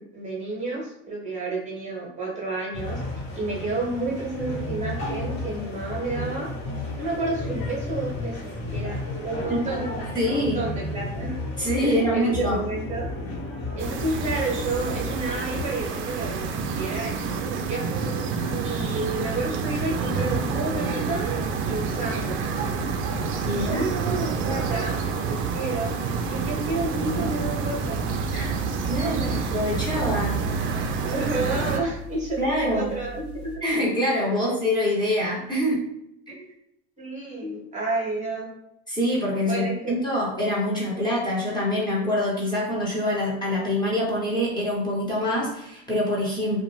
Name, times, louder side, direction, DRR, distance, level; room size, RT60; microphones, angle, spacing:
voice 1, 0.0-3.0 3.3-6.5 7.0-11.4 11.8-13.1 13.8-17.9 18.6-21.3 21.6-22.6 23.5-26.0 26.3-28.0 29.0-29.5 31.0-33.6 34.3-34.6 36.3-36.4 37.0-38.5 39.4-40.0, right 2 dB, 20° right, -3 dB, 0.9 m, -30 dB
sound 1, 2.7-15.6, left 2 dB, 50° left, 1.1 m, -33 dB
voice 2, 10.1-10.6 11.6-12.6 23.4-23.8 28.3-28.5 28.9-30.4 32.4-32.9 33.6-35.8 36.3-36.4 38.9-46.6, left 1 dB, 15° left, -5 dB, 0.9 m, -25 dB
sound 2, 13.8-31.8, right 5 dB, 40° right, 0.4 m, -28 dB
sound 3, 26.1-33.6, left 2 dB, 80° left, 1.1 m, -41 dB
2.4 x 2.2 x 3.1 m, 0.80 s
supercardioid pair, 110°, 32 cm